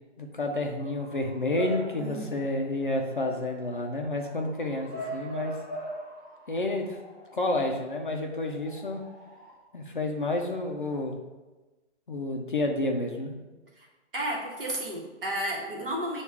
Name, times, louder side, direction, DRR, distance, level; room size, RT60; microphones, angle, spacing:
voice 1, 0.2-5.6 6.5-7.0 7.3-9.0 9.7-11.2 12.1-13.3, left 2 dB, 45° left, 2 dB, 0.4 m, -30 dB
Bark / Motor vehicle (road) / Siren, 0.8-9.5, right 1 dB, 15° right, 0.9 m, -43 dB
voice 2, 2.0-2.3 13.8-13.9 14.1-16.2, right 1 dB, 50° right, -2 dB, 1.1 m, -32 dB
5.9 x 2.4 x 3.4 m, 1.2 s
hypercardioid pair, 180°, 35 cm